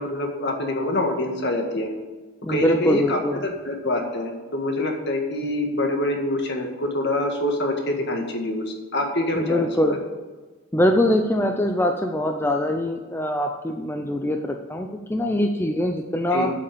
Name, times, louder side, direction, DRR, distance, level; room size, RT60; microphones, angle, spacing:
voice 1, 0.0-1.9 2.5-10.0 16.3-16.5, left 1 dB, 55° left, 3 dB, 1.8 m, -25 dB
voice 2, 2.4-3.4 9.3-10.0 10.7-16.5, left 1 dB, 10° left, 4 dB, 0.6 m, -23 dB
8.4 x 7.8 x 6.9 m, 1.3 s
head